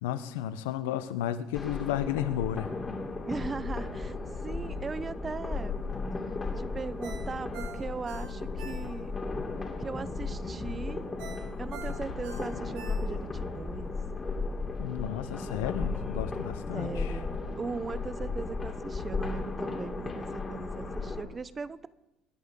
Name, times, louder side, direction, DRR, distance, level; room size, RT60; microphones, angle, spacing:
voice 1, 0.0-2.7 14.8-17.2, left 11 dB, 90° left, 13 dB, 0.8 m, -33 dB
sound 1, 1.5-21.2, left 3 dB, 25° left, 3.3 m, -35 dB
voice 2, 3.3-4.2 4.4-5.9 6.6-9.1 9.8-11.0 11.6-13.9 16.7-21.9, right 4 dB, 30° right, 17 dB, 0.7 m, -39 dB
Ringtone, 7.0-9.3 9.6-9.7 11.2-13.4 13.8-13.9, right 7 dB, 75° right, 2.6 m, -46 dB
25.5 x 10.5 x 3.7 m, 0.96 s
supercardioid pair, 80°, 0 cm